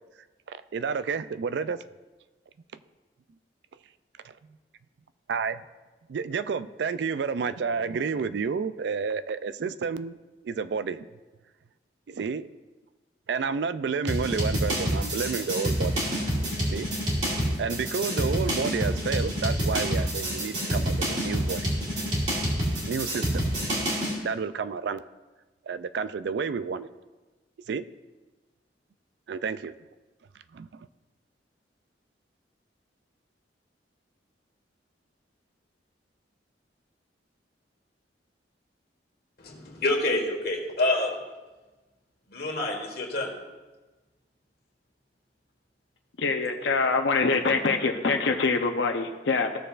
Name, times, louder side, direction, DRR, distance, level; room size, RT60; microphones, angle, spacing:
voice 1, 0.5-1.8 4.2-4.3 5.3-5.6 6.1-10.2 10.4-11.1 12.1-12.5 13.3-16.0 16.7-16.9 17.6-21.7 22.9-23.5 24.2-25.0 25.7-26.9 27.7-27.8 29.3-29.7 30.5-30.9, right 5 dB, 65° right, 14 dB, 0.3 m, -30 dB
sound 1, 14.1-24.2, equal, 40° right, 2.6 m, -27 dB
voice 2, 39.4-41.1 42.3-43.3, left 2 dB, 55° left, 1 dB, 1.6 m, -27 dB
voice 3, 46.2-49.6, left 4 dB, 75° left, 3 dB, 0.7 m, -24 dB
15.5 x 6.7 x 2.5 m, 1.2 s
head